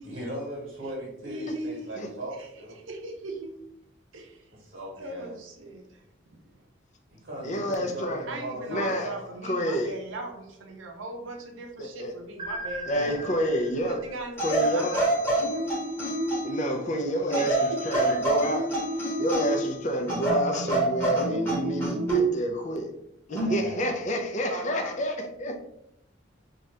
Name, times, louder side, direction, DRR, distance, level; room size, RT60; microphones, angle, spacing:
voice 1, 0.0-2.8 4.5-5.4 7.1-9.4 12.8-13.2 23.4-23.9, right 1 dB, 65° right, -4 dB, 1.1 m, -38 dB
voice 2, 1.3-2.5 2.9-3.5 4.1-4.5 5.0-6.0 6.5-6.6 8.3-13.2 13.8-15.7 17.3-18.2 24.5-25.0, right 1 dB, 80° right, 3 dB, 0.6 m, -38 dB
voice 3, 7.4-8.3 8.7-9.1 9.4-9.9 11.8-12.1 12.9-14.0 14.4-15.0 16.4-18.7 19.2-22.9 23.3-25.6, equal, 40° left, 3 dB, 0.4 m, -29 dB
sound 1, 12.4-15.3, right 2 dB, 30° right, 0.9 m, -40 dB
sound 2, 14.4-16.6 17.3-19.7 20.1-22.3 23.4-23.6, right 2 dB, 10° left, 1.0 m, -26 dB
2.7 x 2.4 x 3.2 m, 0.78 s
head